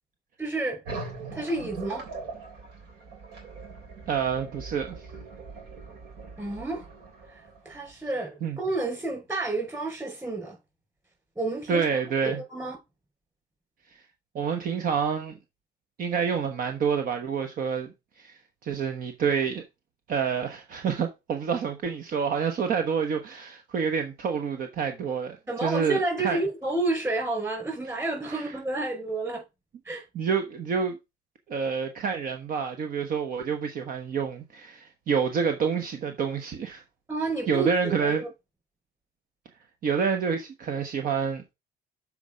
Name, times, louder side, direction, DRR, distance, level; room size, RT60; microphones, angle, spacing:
voice 1, 0.4-0.8 1.3-2.1 6.4-6.9 7.6-10.6 11.3-12.0 12.2-12.8 25.5-29.4 29.8-30.0 37.1-37.7 38.0-38.3, right 2 dB, 15° right, 5.0 m, -30 dB
sound 1, 0.8-8.1, right 4 dB, 75° right, 3.4 m, -41 dB
voice 2, 4.1-5.0 8.4-8.6 11.7-12.4 14.3-15.3 16.0-19.6 20.1-26.4 28.3-28.5 30.1-31.0 31.5-36.8 37.5-38.2 39.8-41.5, right 6 dB, 55° right, 1.1 m, -28 dB
7.0 x 4.8 x 5.1 m
cardioid pair, 110°, 17 cm